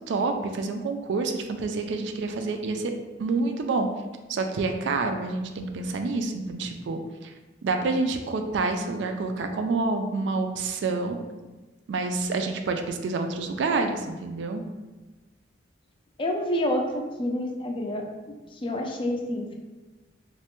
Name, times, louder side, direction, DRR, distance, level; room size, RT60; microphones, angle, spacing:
voice 1, 0.1-2.9 3.2-3.9 4.3-7.3 7.6-11.2 11.9-14.6, right 3 dB, 70° right, 6 dB, 0.3 m, -28 dB
voice 2, 16.2-18.1 18.5-19.5, left 1 dB, 30° left, 2 dB, 0.3 m, -28 dB
3.1 x 2.1 x 2.9 m, 1.2 s
head